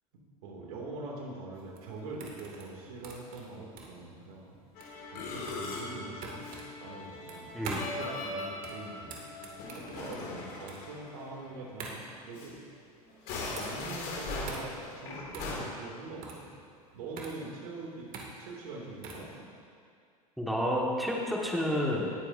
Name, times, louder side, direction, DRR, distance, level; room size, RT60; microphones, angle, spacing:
voice 1, 0.4-7.5 7.9-12.6 13.2-16.5 16.9-18.1 18.4-19.5, right 2 dB, 70° right, -1 dB, 2.6 m, -43 dB
sound 1, 1.5-19.3, right 4 dB, 50° right, 2.3 m, -45 dB
Musical instrument, 4.8-11.6 11.9-12.1 12.3-12.5 13.1-15.6, left 3 dB, 50° left, 2.7 m, -40 dB
voice 2, 20.4-22.1, equal, ahead, -3 dB, 1.7 m, -30 dB
18.5 x 9.6 x 2.7 m, 2.3 s
hypercardioid pair, 90°, 19 cm